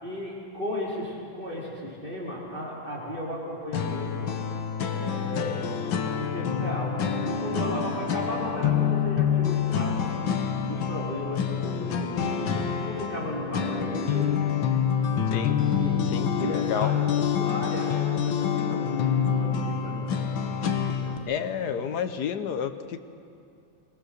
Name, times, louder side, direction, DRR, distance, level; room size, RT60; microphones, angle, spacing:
voice 1, 0.0-4.3 4.9-5.8 6.2-7.0 7.2-10.1 10.6-14.3 15.7-21.4 21.7-21.8, left 1 dB, 25° right, -5 dB, 4.2 m, -35 dB
sound 1, 3.7-21.2, left 7 dB, 75° left, 1.8 m, -27 dB
voice 2, 16.1-16.9 21.3-23.0, left 8 dB, 60° left, 10 dB, 1.3 m, -30 dB
21.5 x 18.5 x 6.6 m, 2.5 s
omnidirectional pair, 2.2 m